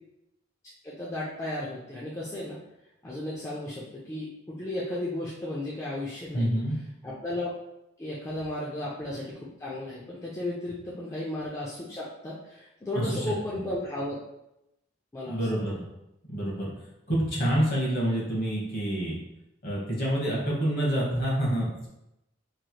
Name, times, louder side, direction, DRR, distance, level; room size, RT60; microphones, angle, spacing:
voice 1, 0.8-2.6 3.0-6.5 7.0-7.5 8.0-9.3 9.6-14.2 15.1-15.4, left 1 dB, 15° left, -7 dB, 0.4 m, -34 dB
voice 2, 6.3-6.8 12.9-13.2 15.3-15.9 16.3-16.7 17.1-19.2 19.6-21.9, equal, 45° left, -5 dB, 1.1 m, -27 dB
3.1 x 2.9 x 2.2 m, 0.85 s
head